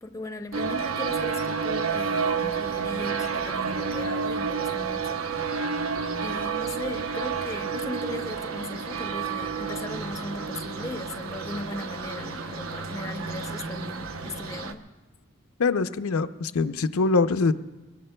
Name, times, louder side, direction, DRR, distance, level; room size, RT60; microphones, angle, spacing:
voice 1, 0.0-5.3 6.2-14.9, left 2 dB, 15° left, 7 dB, 0.5 m, -37 dB
sound 1, 0.5-14.7, right 5 dB, 75° right, 0.8 m, -30 dB
voice 2, 15.6-17.5, left 4 dB, 85° left, 10 dB, 0.5 m, -23 dB
23.0 x 20.5 x 2.2 m, 1.1 s
head